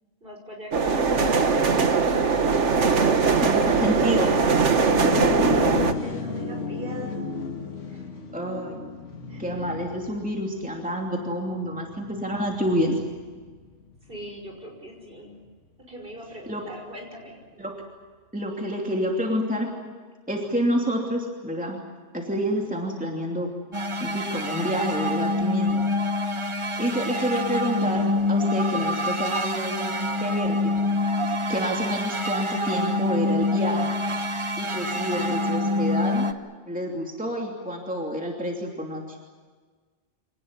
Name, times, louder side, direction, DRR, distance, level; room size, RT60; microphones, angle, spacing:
voice 1, 0.2-2.4 6.0-7.2 7.9-8.2 9.3-9.5 14.0-15.4 15.9-17.4 22.3-22.7, equal, 50° right, 1 dB, 6.2 m, -41 dB
sound 1, 0.7-5.9, right 5 dB, 80° right, 1.7 m, -21 dB
voice 2, 3.3-4.3 5.3-5.6 8.3-8.8 9.4-13.0 16.5-16.6 17.6-17.8 18.3-19.7 20.3-21.8 22.1-23.5 24.0-25.8 26.8-30.7 31.3-33.9 34.6-36.4 36.7-39.0, equal, 5° right, 0 dB, 2.9 m, -28 dB
sound 2, 4.8-14.4, left 4 dB, 90° left, 2.2 m, -34 dB
sound 3, 23.7-36.3, left 2 dB, 25° right, 1.0 m, -26 dB
26.0 x 18.5 x 9.7 m, 1.5 s
omnidirectional pair, 1.2 m